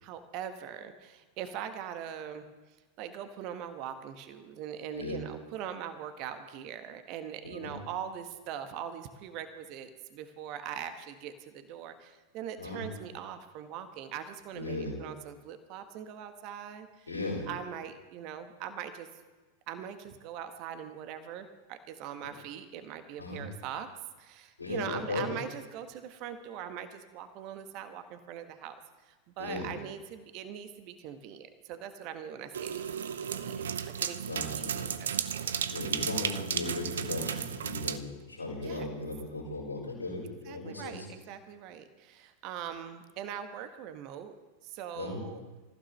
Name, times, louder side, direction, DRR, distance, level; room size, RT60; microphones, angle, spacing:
voice 1, 0.0-2.4 3.0-17.1 17.5-19.1 19.7-23.9 24.2-28.7 29.1-32.9 33.2-35.6 38.6-38.9 40.5-44.3 44.6-45.4, right 9 dB, 40° right, 9 dB, 1.4 m, -41 dB
voice 2, 14.5-15.0 17.1-17.4 23.2-23.4 24.6-25.3 29.4-29.7 34.3-34.9 35.7-41.1 45.0-45.2, left 2 dB, 80° left, -4 dB, 5.4 m, -37 dB
sound 1, 32.5-38.0, right 8 dB, 65° right, 0.7 m, -34 dB
26.5 x 15.0 x 3.3 m, 1.2 s
figure-of-eight pair, 90°, 0 cm